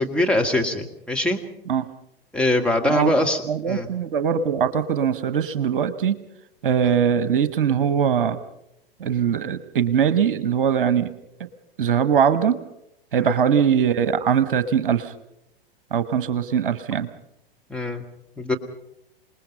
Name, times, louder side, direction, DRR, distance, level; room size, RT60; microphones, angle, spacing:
voice 1, 0.0-1.4 2.3-3.4 3.7-3.9 6.8-6.9 17.7-18.0 18.4-18.6, left 1 dB, 5° left, 1 dB, 1.9 m, -22 dB
voice 2, 3.5-6.2 6.6-8.4 9.0-11.1 11.8-12.6 13.1-15.1 15.9-17.1, right 7 dB, 60° right, 13 dB, 1.2 m, -21 dB
27.0 x 20.0 x 5.4 m, 0.81 s
figure-of-eight pair, 95°, 29 cm